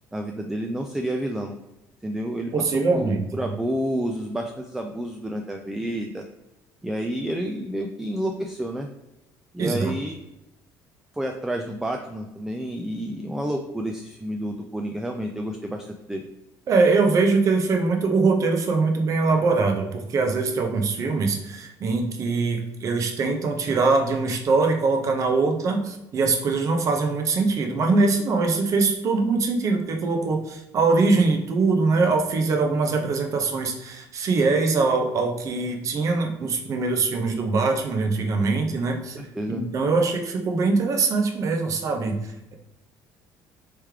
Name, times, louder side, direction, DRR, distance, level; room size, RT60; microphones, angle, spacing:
voice 1, 0.1-1.5 2.0-6.2 6.8-8.9 9.5-10.2 11.1-16.3 39.2-39.6, right 1 dB, 5° right, 3 dB, 0.3 m, -30 dB
voice 2, 2.5-3.5 9.6-9.9 16.7-39.2 39.5-42.5, right 3 dB, 45° right, 3 dB, 0.7 m, -22 dB
3.2 x 3.2 x 3.4 m, 0.92 s
cardioid pair, 105°, 7 cm